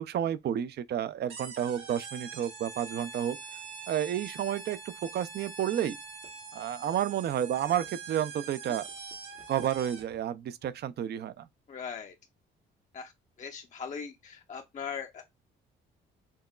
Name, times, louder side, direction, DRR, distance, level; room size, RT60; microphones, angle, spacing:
voice 1, 0.0-3.4 3.9-6.0 6.5-8.8 9.5-11.5, right 10 dB, 55° right, 0.4 m, -31 dB
sound 1, 1.3-10.2, right 5 dB, 80° right, 1.4 m, -44 dB
voice 2, 11.7-12.1 12.9-13.1 13.4-15.2, left 6 dB, 40° left, 0.6 m, -39 dB
4.5 x 2.9 x 2.3 m
cardioid pair, 90°, 20 cm